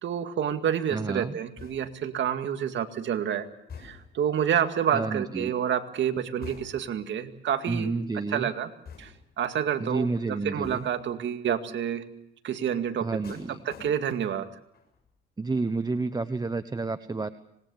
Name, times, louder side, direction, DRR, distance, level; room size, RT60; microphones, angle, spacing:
voice 1, 0.0-3.5 3.8-7.9 8.3-8.7 9.0-12.1 12.4-14.5, right 9 dB, 70° right, 7 dB, 2.2 m, -29 dB
voice 2, 0.9-1.4 4.9-5.5 7.7-8.5 9.8-10.8 13.0-13.6 15.4-17.3, right 3 dB, 20° right, 11 dB, 1.0 m, -30 dB
sound 1, 1.6-2.1 3.7-4.3 6.4-7.0 8.9-9.4 10.6-11.1 13.2-14.4 14.7-15.1, left 5 dB, 55° left, 7.3 m, -47 dB
26.0 x 20.5 x 7.2 m, 0.81 s
cardioid pair, 90°, 20 cm